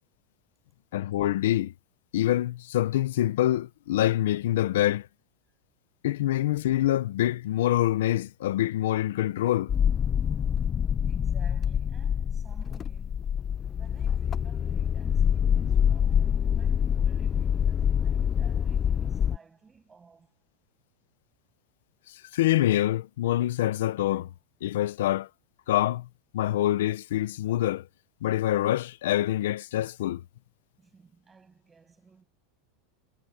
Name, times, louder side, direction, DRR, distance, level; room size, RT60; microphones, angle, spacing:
voice 1, 0.9-1.7 2.1-5.1 6.0-9.7 22.1-24.3 24.6-25.3 25.7-26.1 26.3-27.9 28.2-30.2, left 13 dB, 80° left, 0.8 m, -25 dB
sound 1, 9.7-19.4, left 8 dB, 25° left, 0.3 m, -26 dB
voice 2, 11.1-13.3 13.6-20.4 30.8-32.2, right 5 dB, 15° right, 7.9 m, -56 dB
supercardioid pair, 145°, 0 cm